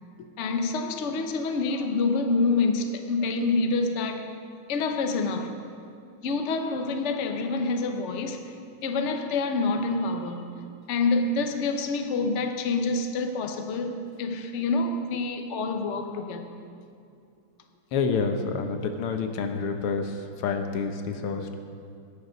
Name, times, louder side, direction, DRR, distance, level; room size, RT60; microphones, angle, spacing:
voice 1, 0.4-4.2 4.7-5.5 6.2-8.4 8.8-10.4 10.9-16.6, left 3 dB, 65° left, 5 dB, 0.7 m, -27 dB
voice 2, 17.9-21.5, left 5 dB, 80° left, 6 dB, 1.8 m, -28 dB
18.5 x 6.9 x 5.2 m, 2.5 s
omnidirectional pair, 2.4 m